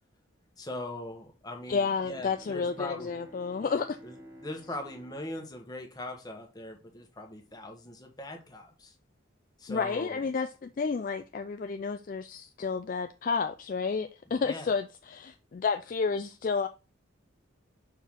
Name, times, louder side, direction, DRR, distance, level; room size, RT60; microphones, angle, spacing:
voice 1, 0.6-3.1 4.0-8.9 9.6-10.2 14.3-14.7, left 1 dB, 20° left, 1.2 m, -41 dB
Bowed string instrument, 1.6-6.5, equal, 15° right, 1.4 m, -53 dB
voice 2, 1.7-4.0 9.7-16.7, left 5 dB, 40° left, 0.3 m, -31 dB
5.9 x 4.6 x 3.6 m
head